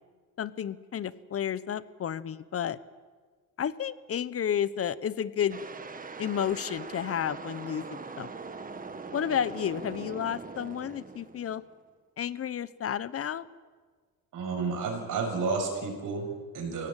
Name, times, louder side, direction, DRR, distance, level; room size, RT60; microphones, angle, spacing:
voice 1, 0.4-2.8 3.6-5.6 6.2-8.3 9.1-11.6 12.2-13.5, left 9 dB, 40° left, 17 dB, 1.0 m, -31 dB
sound 1, 5.5-11.8, right 4 dB, 25° right, 1.6 m, -42 dB
voice 2, 14.3-16.9, right 4 dB, 55° right, 2 dB, 7.0 m, -31 dB
22.5 x 17.5 x 9.0 m, 1.5 s
cardioid pair, 110°, 36 cm